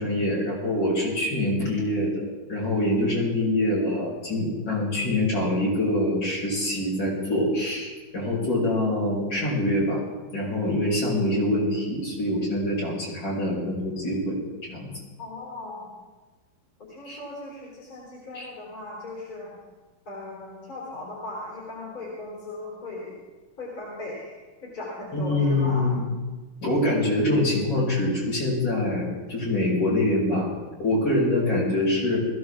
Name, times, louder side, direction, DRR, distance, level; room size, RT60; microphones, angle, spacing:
voice 1, 0.0-2.2 2.5-10.0 10.3-14.4 14.7-14.9 17.0-17.2 18.3-18.5 25.1-26.1 26.6-30.5 30.8-32.2, left 1 dB, 65° left, -5 dB, 6.1 m, -25 dB
voice 2, 15.2-16.0 16.8-19.6 20.1-23.2 23.6-25.9, left 2 dB, 45° left, -5 dB, 4.5 m, -38 dB
20.5 x 15.5 x 3.7 m, 1.3 s
omnidirectional pair, 2.3 m